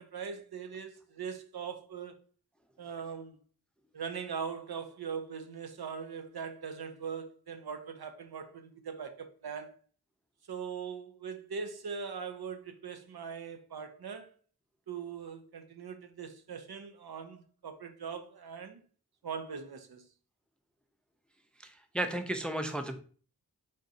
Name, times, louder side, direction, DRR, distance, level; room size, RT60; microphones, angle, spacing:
voice 1, 0.0-2.2 2.8-3.4 3.9-9.7 10.5-14.3 14.9-18.8 19.2-20.0, right 6 dB, 70° right, 0.6 m, -41 dB
voice 2, 21.6-23.0, right 1 dB, 5° left, 0.4 m, -34 dB
3.7 x 2.6 x 4.0 m
wide cardioid pair, 60°, 39 cm